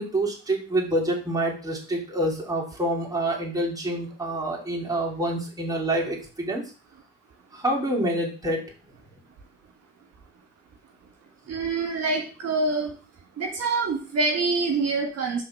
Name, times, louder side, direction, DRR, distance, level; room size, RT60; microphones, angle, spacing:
voice 1, 0.0-6.6 7.5-8.6, right 1 dB, 10° right, -3 dB, 2.8 m, -27 dB
voice 2, 11.5-12.9 13.4-15.4, right 3 dB, 60° right, 0 dB, 1.6 m, -25 dB
5.5 x 3.7 x 5.9 m, 0.37 s
supercardioid pair, 70°, 29 cm